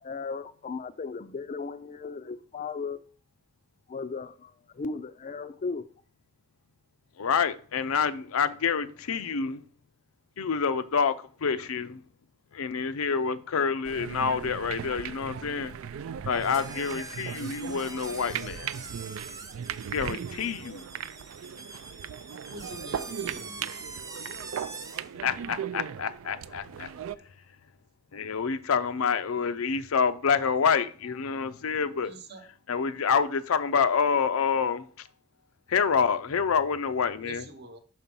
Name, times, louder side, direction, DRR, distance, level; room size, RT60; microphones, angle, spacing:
voice 1, 0.0-3.0 3.9-5.9, left 4 dB, 35° left, 0.4 m, -36 dB
voice 2, 7.2-9.6 10.4-11.1 11.4-12.0 12.5-15.7 16.3-18.7 19.9-20.8 25.2-26.9 28.1-32.1 32.7-34.8 35.7-37.5, left 6 dB, 90° left, 0.5 m, -27 dB
sound 1, 13.9-27.2, right 8 dB, 75° right, 0.3 m, -38 dB
sound 2, 16.3-25.1, right 3 dB, 15° right, 0.6 m, -44 dB
voice 3, 22.5-23.8 32.0-32.5 37.2-37.8, right 2 dB, 55° right, 1.0 m, -45 dB
6.0 x 4.3 x 5.4 m
head